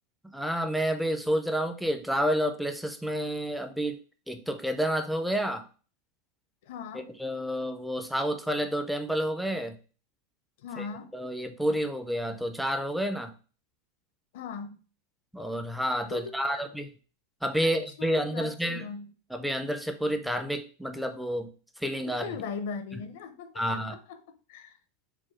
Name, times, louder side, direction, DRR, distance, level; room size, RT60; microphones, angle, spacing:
voice 1, 0.2-4.0 4.3-5.6 7.2-9.8 10.8-10.9 11.1-13.3 15.3-16.9 17.4-18.9 19.3-21.5 21.8-22.3 23.6-23.9, equal, ahead, 7 dB, 0.4 m, -29 dB
voice 2, 6.6-7.1 10.6-11.1 14.3-14.8 16.1-16.7 17.6-19.1 22.1-24.2 24.5-24.8, left 5 dB, 60° left, 10 dB, 0.6 m, -39 dB
4.8 x 2.2 x 4.3 m, 0.37 s
supercardioid pair, 165°, 0 cm